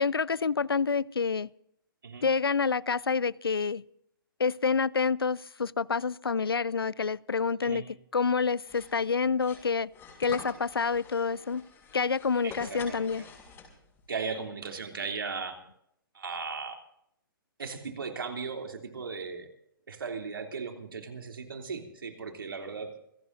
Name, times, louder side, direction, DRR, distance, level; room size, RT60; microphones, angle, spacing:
voice 1, 0.0-1.5 2.2-3.8 4.4-9.9 10.2-11.6 11.9-13.2, left 5 dB, 85° left, 0.5 m, -28 dB
sound 1, 8.6-14.0, left 5 dB, 20° left, 5.8 m, -46 dB
voice 2, 12.4-13.3 14.1-15.6 16.1-16.8 17.6-19.5 19.9-22.9, right 5 dB, 70° right, 3.1 m, -37 dB
28.5 x 16.5 x 2.7 m
figure-of-eight pair, 125°, 12 cm